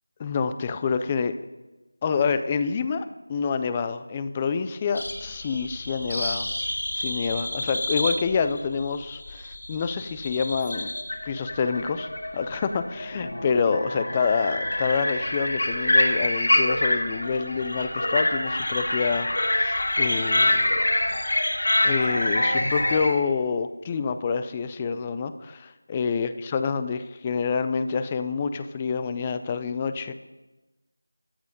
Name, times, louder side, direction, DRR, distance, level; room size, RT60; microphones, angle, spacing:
voice 1, 0.2-1.4 2.0-6.5 6.9-10.9 11.3-19.3 19.6-20.8 21.8-30.1, left 5 dB, 15° left, 11 dB, 0.4 m, -27 dB
sound 1, 5.0-23.1, left 1 dB, 70° left, 2.6 m, -26 dB
13.5 x 9.6 x 5.2 m, 1.1 s
figure-of-eight pair, 175°, 0 cm